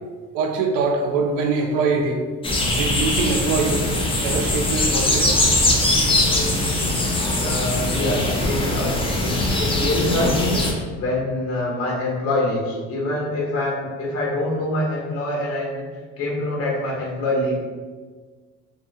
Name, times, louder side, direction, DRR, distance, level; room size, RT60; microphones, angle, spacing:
voice 1, 0.3-2.3 2.7-3.9 4.2-5.4, right 4 dB, 80° right, 4 dB, 0.5 m, -23 dB
sound 1, 2.4-10.7, left 1 dB, 15° left, 0.4 m, -21 dB
voice 2, 7.4-10.6 11.0-15.8 16.2-17.6, left 1 dB, 45° left, -3 dB, 0.8 m, -25 dB
2.7 x 2.3 x 2.6 m, 1.5 s
cardioid pair, 115°, 32 cm